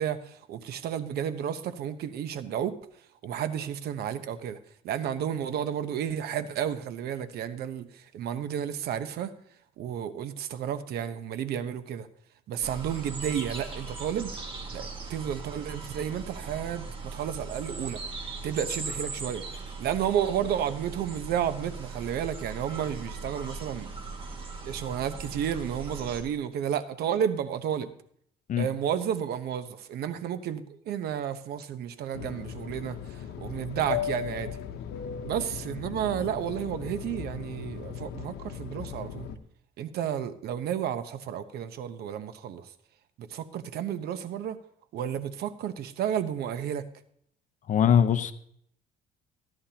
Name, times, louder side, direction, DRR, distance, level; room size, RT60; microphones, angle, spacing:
voice 1, 0.0-2.8 3.2-4.6 4.8-9.3 9.8-12.1 12.5-14.3 14.7-18.0 18.4-19.4 19.8-23.9 24.7-27.9 28.6-33.0 33.4-34.6 35.2-39.3 39.8-42.7 43.2-44.6 44.9-46.8, right 9 dB, 70° right, 0.9 m, -32 dB
sound 1, 12.6-26.2, right 3 dB, 30° right, 2.1 m, -39 dB
Fixed-wing aircraft airplane, 32.1-39.4, left 9 dB, 75° left, 1.0 m, -37 dB
voice 2, 47.7-48.3, left 8 dB, 50° left, 0.8 m, -21 dB
15.0 x 11.0 x 2.9 m
cardioid pair, 110°, 17 cm